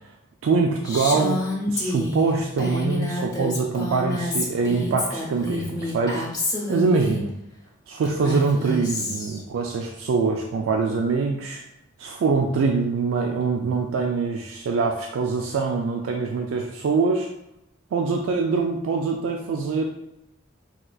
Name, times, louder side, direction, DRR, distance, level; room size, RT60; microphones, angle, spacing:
voice 1, 0.4-6.2 6.7-7.3 7.9-11.6 12.0-17.3 17.9-19.8, right 4 dB, 80° right, 3 dB, 0.3 m, -24 dB
Female speech woman speaking, 0.8-7.2 8.0-9.4, left 2 dB, 20° left, 0.7 m, -28 dB
4.2 x 2.4 x 2.2 m, 0.84 s
head